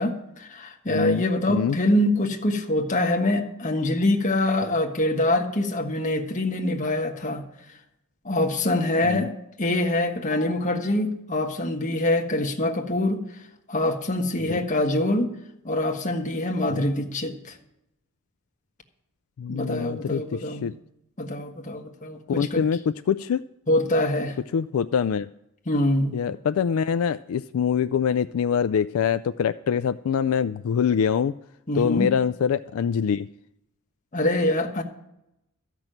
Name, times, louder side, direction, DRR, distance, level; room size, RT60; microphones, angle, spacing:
voice 1, 0.0-7.4 8.2-9.3 9.6-13.2 13.7-15.3 15.6-17.5 19.5-20.7 21.2-22.6 23.7-24.4 25.7-26.2 31.7-32.1 34.1-34.8, left 1 dB, 35° left, 2 dB, 1.4 m, -24 dB
voice 2, 0.9-1.2 1.5-1.8 9.0-9.3 14.4-14.6 16.7-16.8 19.4-20.7 22.3-22.8 23.1-23.4 24.5-25.3 26.1-31.3 31.8-33.3, left 7 dB, 75° left, 12 dB, 0.3 m, -24 dB
13.5 x 6.1 x 9.0 m, 0.83 s
head